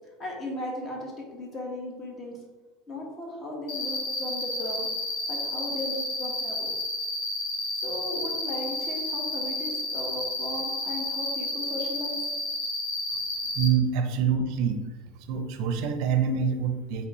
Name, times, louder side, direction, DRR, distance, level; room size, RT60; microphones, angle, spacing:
voice 1, 0.2-2.4 2.9-4.9 5.3-6.7 7.7-12.2, left 1 dB, 25° left, -1 dB, 1.1 m, -36 dB
Cricket, 3.7-13.7, left 2 dB, 70° left, 1.0 m, -31 dB
voice 2, 13.6-14.9 15.3-17.1, right 6 dB, 60° right, 7 dB, 0.5 m, -26 dB
4.5 x 3.4 x 3.0 m, 1.3 s
supercardioid pair, 135°, 0 cm